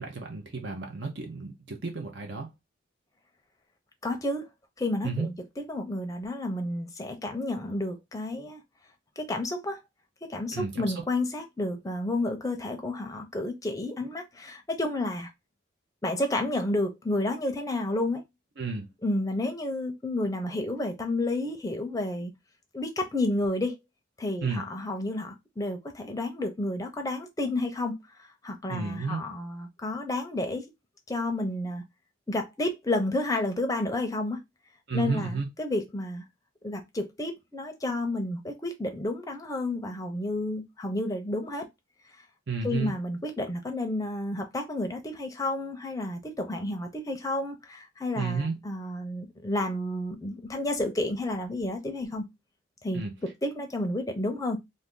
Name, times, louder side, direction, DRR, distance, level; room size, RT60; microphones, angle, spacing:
voice 1, 0.0-2.5 5.0-5.3 10.5-10.9 18.6-18.9 24.4-24.6 28.7-29.2 34.9-35.5 42.5-42.9 48.2-48.6 52.9-53.1, right 4 dB, 55° right, 0.7 m, -32 dB
voice 2, 4.0-4.5 4.8-8.6 9.2-9.8 10.2-15.3 16.0-18.2 19.0-22.3 22.7-23.8 24.2-30.7 31.1-31.8 32.3-34.4 34.9-36.2 36.6-41.7 42.6-52.3 52.8-54.6, left 1 dB, 15° left, 0.6 m, -31 dB
2.6 x 2.6 x 3.6 m
head